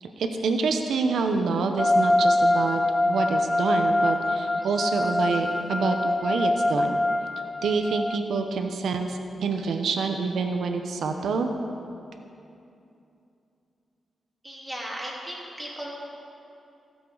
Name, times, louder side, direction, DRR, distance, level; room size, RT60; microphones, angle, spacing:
voice 1, 0.0-2.8 3.1-7.0 7.6-11.5, right 4 dB, 80° right, 5 dB, 0.8 m, -27 dB
sound 1, 1.8-8.2, left 1 dB, 20° left, 0.5 m, -24 dB
voice 2, 14.4-15.9, equal, 15° right, -4 dB, 3.4 m, -36 dB
15.0 x 13.0 x 3.9 m, 2.7 s
cardioid pair, 80°, 0 cm